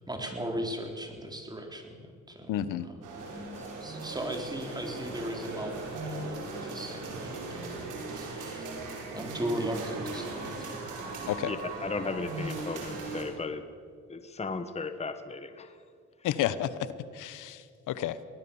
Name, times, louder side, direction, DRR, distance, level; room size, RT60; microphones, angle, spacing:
voice 1, 0.1-3.0 3.3-3.5 3.8-8.7 9.1-10.8, right 1 dB, 15° right, 3 dB, 4.0 m, -37 dB
voice 2, 2.5-2.9 11.3-11.5 16.2-16.7 17.1-18.2, left 12 dB, 90° left, 15 dB, 1.1 m, -31 dB
sound 1, 3.0-13.2, right 3 dB, 80° right, 5.0 m, -38 dB
voice 3, 11.4-13.6 14.1-15.7, left 4 dB, 20° left, 9 dB, 1.2 m, -36 dB
23.5 x 18.5 x 7.1 m, 2.2 s
cardioid pair, 90°, 30 cm